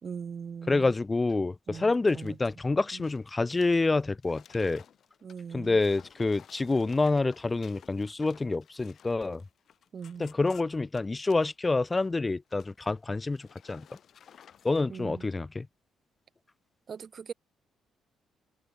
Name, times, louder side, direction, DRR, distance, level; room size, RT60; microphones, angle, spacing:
voice 1, 0.0-0.9 1.7-2.4 2.9-3.1 5.2-5.8 9.9-10.3 14.9-15.3 16.9-17.3, right 6 dB, 45° right, 1.8 m, -41 dB
voice 2, 0.7-4.8 5.5-9.4 10.2-13.9 14.6-15.7, left 3 dB, 20° left, 0.3 m, -27 dB
sound 1, 2.1-2.5 2.9-11.5 11.9-12.2 12.5-13.0 13.3-14.8, left 8 dB, 60° left, 2.9 m, -56 dB
cardioid pair, 90°, 0 cm